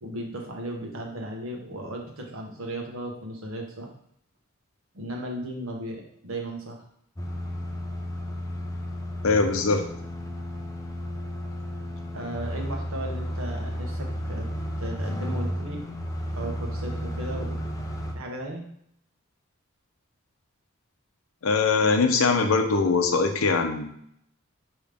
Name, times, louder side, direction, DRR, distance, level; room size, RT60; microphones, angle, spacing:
voice 1, 0.0-3.9 4.9-6.8 12.1-14.5 14.8-15.8 16.3-17.6 18.1-18.6, right 1 dB, 75° right, 1 dB, 1.0 m, -36 dB
sound 1, 7.2-18.1, equal, 15° left, 0.5 m, -33 dB
voice 2, 9.2-9.9 21.4-23.8, left 4 dB, 85° left, 6 dB, 0.6 m, -22 dB
5.1 x 3.1 x 3.4 m, 0.70 s
head